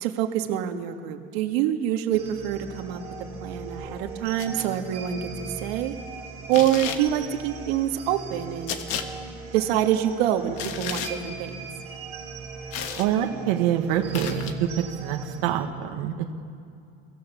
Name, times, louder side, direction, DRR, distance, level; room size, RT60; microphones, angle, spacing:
voice 1, 0.0-3.0 3.4-5.9 6.5-8.8 9.5-11.5, right 11 dB, 80° right, 5 dB, 1.7 m, -26 dB
sound 1, 2.1-15.4, right 4 dB, 20° right, 4.2 m, -39 dB
sound 2, 4.4-4.7 6.5-7.0 8.7-9.1 10.6-11.1 12.7-13.1 14.1-14.5, left 8 dB, 50° left, 1.5 m, -32 dB
voice 2, 13.0-16.3, right 10 dB, 60° right, 2 dB, 1.5 m, -26 dB
24.0 x 16.0 x 7.2 m, 2.5 s
cardioid pair, 180°, 30 cm